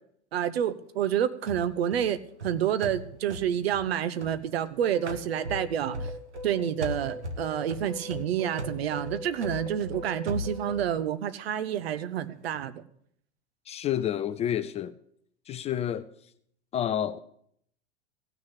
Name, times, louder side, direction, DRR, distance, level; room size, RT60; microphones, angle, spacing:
voice 1, 0.3-2.2 2.4-6.1 6.4-12.8, right 10 dB, 60° right, 1.0 m, -29 dB
sound 1, 1.5-4.7 5.1-6.5 6.8-11.0, equal, 85° right, 1.2 m, -39 dB
sound 2, 4.8-11.0, left 1 dB, 10° right, 2.2 m, -41 dB
voice 2, 13.7-14.9 15.5-16.1 16.7-17.2, left 10 dB, 20° left, 0.4 m, -29 dB
16.0 x 6.4 x 8.0 m
figure-of-eight pair, 90°, 34 cm